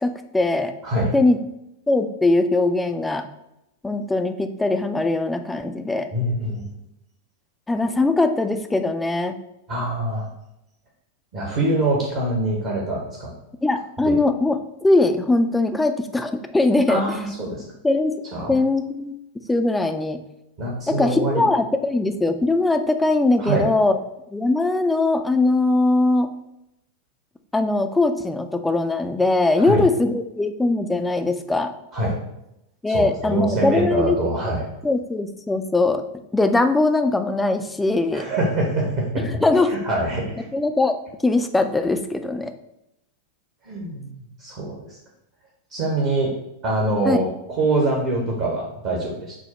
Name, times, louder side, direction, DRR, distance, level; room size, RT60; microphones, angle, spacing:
voice 1, 0.0-0.7 1.1-1.4 1.9-3.3 3.8-6.1 7.7-9.4 13.6-17.0 17.8-18.2 18.5-19.2 19.5-20.2 20.9-24.0 24.3-26.3 27.5-31.7 32.8-34.2 34.8-36.0 36.3-38.3 39.3-39.8 40.5-40.9 41.2-42.5 47.1-47.2, left 2 dB, 10° left, 7 dB, 0.3 m, -21 dB
voice 2, 0.8-1.1 6.1-6.6 9.7-10.3 11.3-13.3 14.0-14.1 16.9-17.6 18.3-18.6 20.6-21.4 23.4-23.7 29.6-29.8 31.9-32.2 32.9-34.7 38.1-39.3 39.7-40.3 43.6-45.0 45.7-46.3 46.6-49.3, right 2 dB, 45° right, -2 dB, 0.9 m, -24 dB
4.7 x 2.1 x 4.1 m, 0.87 s
figure-of-eight pair, 90°, 0 cm